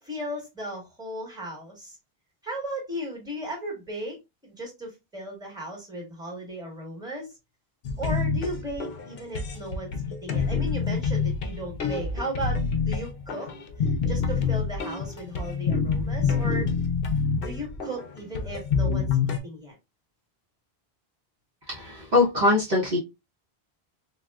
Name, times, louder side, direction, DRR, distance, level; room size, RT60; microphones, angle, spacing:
voice 1, 0.0-2.0 2.4-7.3 8.0-12.6 12.9-13.5 13.8-16.7 17.4-19.8, right 1 dB, 5° right, 0 dB, 1.3 m, -36 dB
sound 1, 7.8-19.4, left 5 dB, 70° left, 0.8 m, -27 dB
voice 2, 21.7-23.0, left 2 dB, 50° right, -5 dB, 0.9 m, -22 dB
3.6 x 2.3 x 2.2 m, 0.23 s
omnidirectional pair, 1.0 m